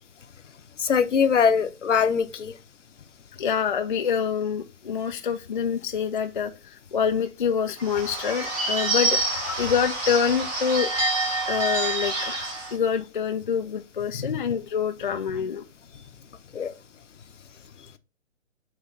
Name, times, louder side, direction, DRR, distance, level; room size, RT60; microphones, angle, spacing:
voice 1, 0.8-2.5 14.2-14.3 16.5-16.7, left 6 dB, 65° left, 0.8 m, -22 dB
voice 2, 3.4-9.2 9.6-10.9 11.5-15.6, left 7 dB, 40° left, 0.4 m, -26 dB
Bird / Bell, 7.8-12.8, right 2 dB, 10° right, 0.8 m, -27 dB
7.4 x 3.1 x 4.1 m
figure-of-eight pair, 135°, 40 cm